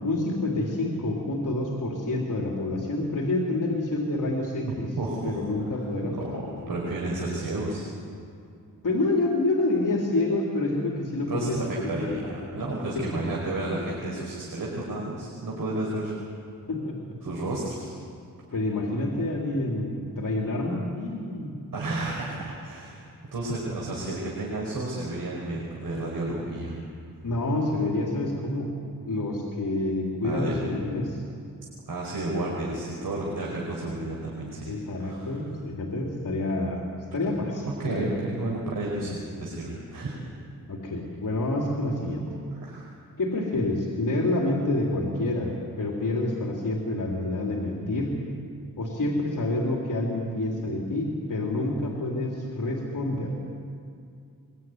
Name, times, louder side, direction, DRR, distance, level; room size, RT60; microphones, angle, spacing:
voice 1, 0.0-4.9 5.2-6.8 8.8-12.2 12.4-12.6 12.9-13.2 16.7-17.2 18.5-21.6 27.2-28.7 29.0-31.2 34.7-38.2 40.7-42.3 43.2-48.2 48.8-53.3, left 2 dB, 60° left, -1 dB, 3.5 m, -28 dB
voice 2, 4.7-5.4 6.1-7.9 11.3-16.2 17.2-17.9 21.7-23.0 23.3-26.8 30.2-30.6 31.9-34.7 35.0-35.4 37.8-40.2 42.2-42.9, right 2 dB, 70° right, -3 dB, 5.2 m, -32 dB
23.5 x 23.0 x 9.5 m, 2.5 s
wide cardioid pair, 105°, 35 cm